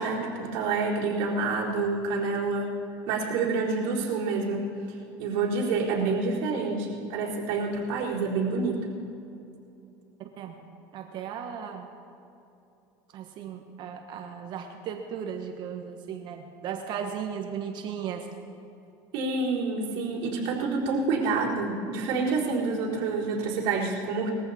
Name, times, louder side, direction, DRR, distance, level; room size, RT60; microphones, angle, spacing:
voice 1, 0.0-2.8 3.1-8.9 19.1-24.3, right 4 dB, 70° right, -4 dB, 4.1 m, -28 dB
voice 2, 10.9-11.9 13.1-18.3, right 8 dB, 55° right, 4 dB, 1.3 m, -36 dB
21.0 x 14.5 x 4.3 m, 2.8 s
supercardioid pair, 110°, 9 cm